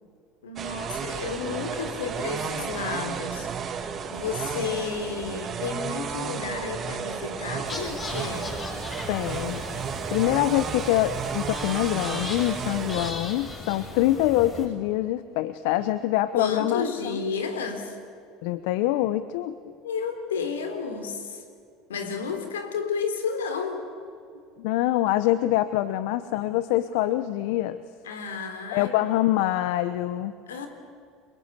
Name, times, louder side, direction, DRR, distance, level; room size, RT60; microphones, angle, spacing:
voice 1, 0.4-8.6 16.3-18.0 19.6-21.4 21.9-23.9 28.0-29.1 30.5-30.7, left 5 dB, 90° left, 7 dB, 3.5 m, -32 dB
sound 1, 0.6-13.1, right 6 dB, 40° right, 2.7 m, -33 dB
sound 2, 7.6-14.7, left 2 dB, 30° left, 7.3 m, -38 dB
voice 2, 9.1-9.6 10.1-17.2 18.4-19.6 24.6-27.8 28.7-30.3, left 14 dB, 70° left, 14 dB, 0.9 m, -25 dB
30.0 x 22.0 x 8.3 m, 2.3 s
hypercardioid pair, 80°, 0 cm